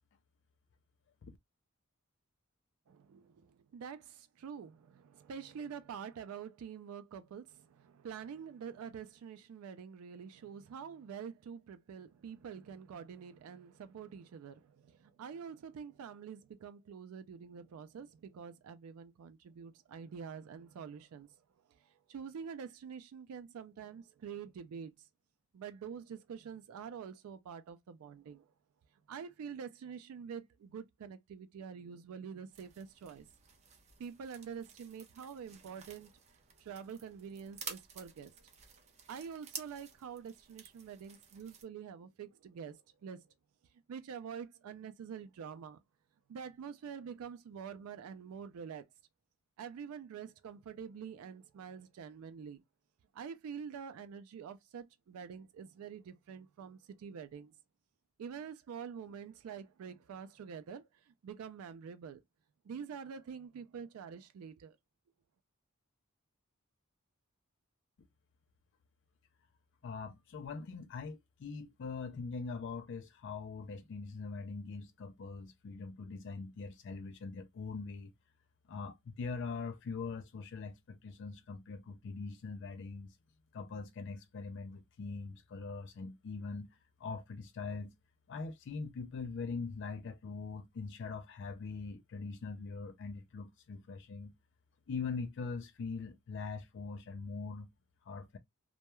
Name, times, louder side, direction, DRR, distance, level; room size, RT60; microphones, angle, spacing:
voice 1, 2.9-21.4 21.7-24.9 25.5-28.5 29.1-33.3 34.0-36.1 36.6-38.3 39.1-43.2 43.9-45.8 46.3-48.9 49.6-52.6 53.1-57.5 58.2-62.2 62.6-64.8, right 7 dB, 85° right, 0.3 m, -46 dB
sound 1, 32.5-41.6, right 7 dB, 30° right, 0.5 m, -52 dB
voice 2, 69.8-78.1 78.7-83.2 83.5-86.7 87.0-87.9 88.3-94.3 94.9-97.7 98.0-98.4, left 4 dB, 55° left, 0.3 m, -42 dB
2.2 x 2.2 x 2.9 m
head